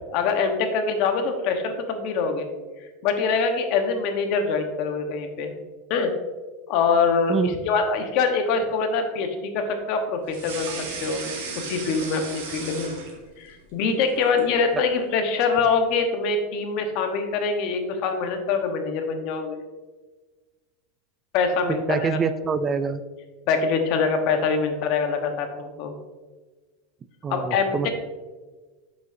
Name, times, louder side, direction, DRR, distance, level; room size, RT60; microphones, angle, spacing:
voice 1, 0.1-2.5 3.0-5.5 5.9-6.1 6.7-7.3 7.7-10.7 11.0-11.2 11.7-12.9 13.4-19.6 21.3-22.2 23.5-25.9 27.3-27.9, left 5 dB, 55° left, 5 dB, 1.1 m, -24 dB
voice 2, 7.3-7.6 21.7-23.0 27.2-27.9, right 5 dB, 25° right, 11 dB, 0.3 m, -26 dB
sound 1, 10.3-13.5 13.9-14.6, right 3 dB, 75° right, 2.1 m, -35 dB
7.9 x 6.3 x 2.7 m, 1.3 s
supercardioid pair, 135°, 0 cm